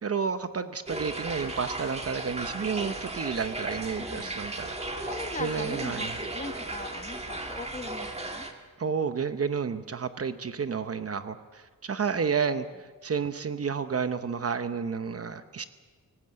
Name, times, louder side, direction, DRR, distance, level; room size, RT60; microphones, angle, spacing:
voice 1, 0.0-5.1 5.4-6.1 8.8-15.6, right 6 dB, 45° right, 10 dB, 0.9 m, -31 dB
sound 1, 0.9-8.5, right 2 dB, 20° right, 1.9 m, -36 dB
voice 2, 4.0-4.4 5.0-8.5, left 3 dB, 20° left, 7 dB, 1.5 m, -40 dB
25.0 x 18.0 x 7.6 m, 1.4 s
wide cardioid pair, 155°, 34 cm